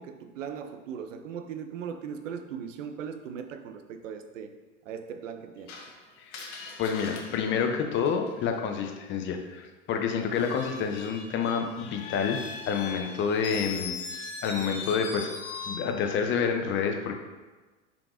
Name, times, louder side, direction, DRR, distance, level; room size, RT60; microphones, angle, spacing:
voice 1, 0.0-4.5 4.9-5.7, right 7 dB, 80° right, 8 dB, 0.6 m, -38 dB
Screech, 5.7-8.6 10.2-15.9, left 4 dB, 70° left, 1.0 m, -40 dB
voice 2, 6.8-12.4 12.7-15.3 15.7-17.2, left 6 dB, 30° left, 4 dB, 0.6 m, -28 dB
5.9 x 3.5 x 2.5 m, 1.2 s
hypercardioid pair, 95°, 38 cm